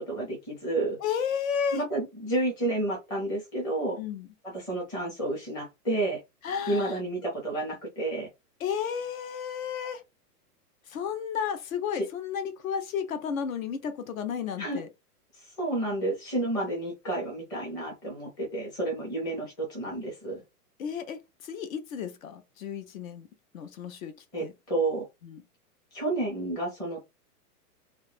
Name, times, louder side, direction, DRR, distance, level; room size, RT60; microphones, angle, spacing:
voice 1, 0.1-1.0 1.7-4.0 4.4-6.2 6.7-8.3 11.9-12.0 14.6-14.8 15.3-20.4 24.3-25.0 25.9-27.1, right 2 dB, 10° left, 0.5 m, -30 dB
voice 2, 1.0-1.8 4.0-4.3 6.4-7.0 8.6-10.0 10.9-14.9 20.8-23.3 23.5-24.5 25.3-25.4, left 7 dB, 60° left, 0.6 m, -33 dB
2.3 x 2.0 x 3.2 m
hypercardioid pair, 150°, 47 cm